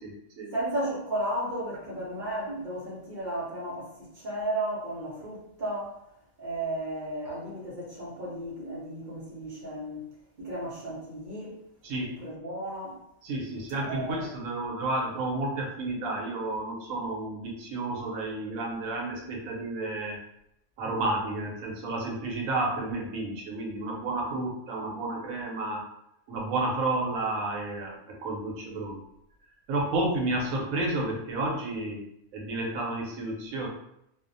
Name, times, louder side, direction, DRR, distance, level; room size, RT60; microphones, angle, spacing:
voice 1, 0.0-0.5 11.8-12.2 13.2-20.2 20.8-25.8 26.3-29.0 29.7-32.0 32.3-33.7, right 2 dB, 75° right, -1 dB, 1.1 m, -31 dB
voice 2, 0.5-3.9 4.2-5.9 6.4-10.0 10.4-11.5 12.2-13.0 13.8-14.2, right 1 dB, 50° right, -7 dB, 0.6 m, -34 dB
2.7 x 2.0 x 2.5 m, 0.77 s
omnidirectional pair, 1.5 m